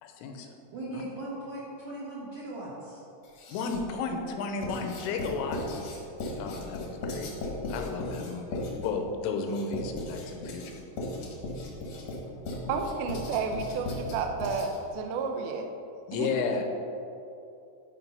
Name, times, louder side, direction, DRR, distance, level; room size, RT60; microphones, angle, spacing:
voice 1, 0.0-0.5 0.9-1.0 3.5-5.8 6.4-7.3 7.7-10.6 16.1-16.6, left 4 dB, 85° left, 3 dB, 3.3 m, -33 dB
voice 2, 0.7-3.0, right 1 dB, 65° right, -8 dB, 2.1 m, -38 dB
Writing, 3.2-4.0 4.6-14.9, left 2 dB, 65° left, 1.7 m, -37 dB
voice 3, 12.7-15.7 16.1-16.3, right 4 dB, 85° right, 4 dB, 2.1 m, -31 dB
12.0 x 5.0 x 5.6 m, 2.7 s
omnidirectional pair, 5.5 m